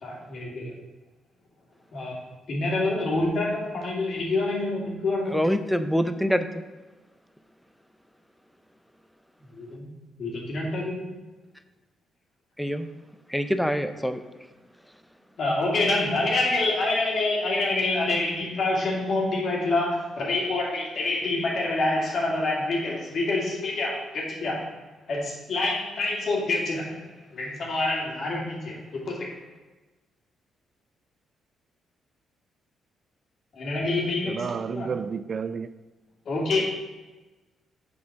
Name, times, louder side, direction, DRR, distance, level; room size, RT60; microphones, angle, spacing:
voice 1, 0.0-0.7 1.9-2.1 2.5-5.4 9.5-9.9 10.2-11.1 15.4-24.7 25.1-29.4 33.6-34.9 36.3-36.6, left 2 dB, 60° left, 2.3 m, -27 dB
voice 2, 5.3-6.5 12.6-12.9 13.3-14.2, equal, ahead, 0.6 m, -25 dB
voice 3, 34.2-35.7, right 6 dB, 50° right, 0.4 m, -31 dB
6.9 x 4.9 x 4.7 m
supercardioid pair, 60°, 0 cm